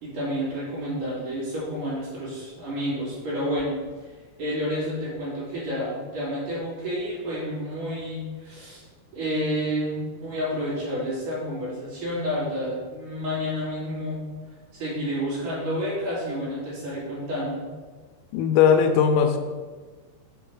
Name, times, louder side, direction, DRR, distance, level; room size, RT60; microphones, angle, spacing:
voice 1, 0.0-4.1 4.4-8.8 9.1-14.3 14.7-17.6, equal, 45° right, -8 dB, 3.7 m, -30 dB
voice 2, 18.3-19.4, left 7 dB, 85° left, 6 dB, 3.3 m, -18 dB
7.9 x 5.3 x 6.2 m, 1.4 s
omnidirectional pair, 5.7 m